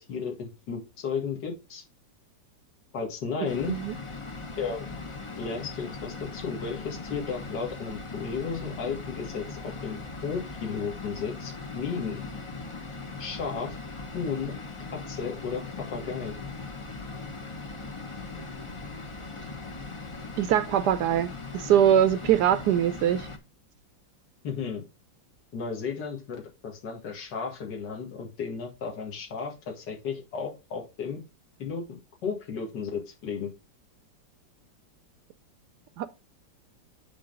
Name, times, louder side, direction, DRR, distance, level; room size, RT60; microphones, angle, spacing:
voice 1, 0.1-1.8 2.9-3.8 4.6-4.9 5.4-12.2 13.2-13.8 14.1-14.5 15.1-16.4 24.4-24.8 25.5-31.2 31.6-33.5, left 5 dB, 65° left, 2.4 m, -34 dB
sound 1, 3.4-23.4, left 3 dB, 45° left, 0.4 m, -39 dB
voice 2, 20.4-23.3 36.0-36.1, right 10 dB, 75° right, 1.0 m, -23 dB
9.8 x 3.8 x 3.8 m
omnidirectional pair, 2.0 m